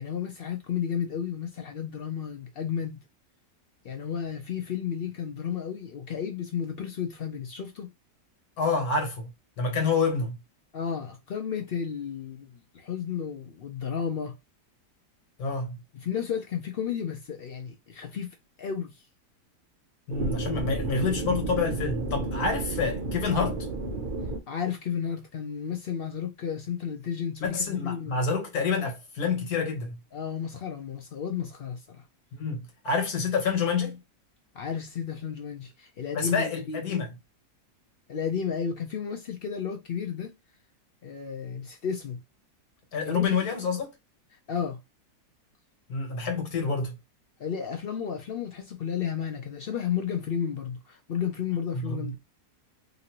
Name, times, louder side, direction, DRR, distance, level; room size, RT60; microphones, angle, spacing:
voice 1, 0.0-3.0 3.8-7.9 10.7-14.4 15.9-18.9 24.5-28.2 30.1-32.0 34.5-36.8 38.1-40.3 41.0-42.2 43.0-43.2 44.5-44.8 47.4-52.1, left 7 dB, 80° left, 0.5 m, -32 dB
voice 2, 8.6-9.3 9.6-10.3 15.4-15.8 20.1-23.6 27.4-29.9 32.4-34.0 36.1-37.1 42.9-43.9 45.9-47.0 51.7-52.1, left 5 dB, 65° left, 1.6 m, -28 dB
sound 1, 20.1-24.4, right 3 dB, 55° right, 0.5 m, -31 dB
3.0 x 2.7 x 2.8 m
omnidirectional pair, 1.7 m